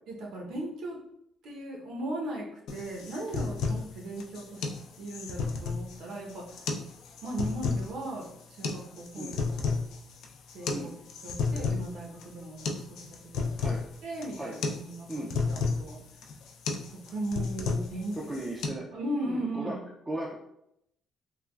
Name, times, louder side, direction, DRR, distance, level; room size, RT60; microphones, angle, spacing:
voice 1, 0.1-1.0 1.4-4.6 5.0-6.6 7.2-9.8 10.5-10.9 11.2-16.0 16.9-18.2 18.9-19.8, right 1 dB, 70° right, -1 dB, 0.7 m, -37 dB
sound 1, 2.7-18.7, left 4 dB, 75° left, 0.3 m, -33 dB
voice 2, 18.1-18.9 19.3-19.7 20.1-20.3, right 1 dB, 15° right, -4 dB, 0.3 m, -36 dB
3.2 x 2.2 x 2.3 m, 0.77 s
cardioid pair, 160°, 0 cm